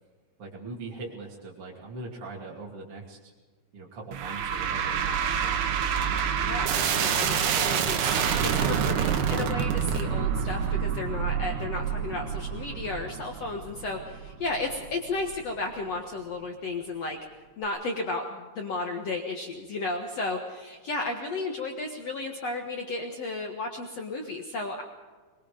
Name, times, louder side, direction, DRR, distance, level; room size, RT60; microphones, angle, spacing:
voice 1, 0.4-3.3 3.7-5.6, right 3 dB, 35° right, -3 dB, 2.8 m, -41 dB
sound 1, 4.1-15.4, right 7 dB, 65° right, 3.2 m, -28 dB
voice 2, 6.4-17.2 17.6-24.8, left 3 dB, 75° left, 2 dB, 1.5 m, -33 dB
23.5 x 22.0 x 5.2 m, 1.4 s
omnidirectional pair, 5.5 m